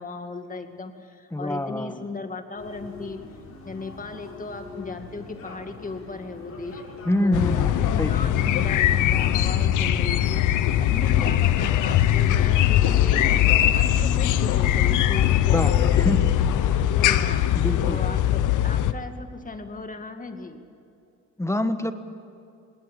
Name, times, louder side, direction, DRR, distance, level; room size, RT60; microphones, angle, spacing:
voice 1, 0.0-3.2 3.6-6.8 7.2-10.4 10.8-16.1 16.9-17.5 17.8-20.6, left 3 dB, 25° left, 6 dB, 2.2 m, -36 dB
voice 2, 1.3-2.0 7.0-8.3 15.5-15.7 16.0-16.3 17.5-18.0 21.4-21.9, left 1 dB, 10° left, 9 dB, 1.4 m, -26 dB
sound 1, 2.6-13.3, left 4 dB, 60° left, 5.5 m, -42 dB
sound 2, 7.3-18.9, left 11 dB, 85° left, 0.9 m, -21 dB
19.5 x 19.0 x 9.0 m, 2.6 s
cardioid pair, 90°, 30 cm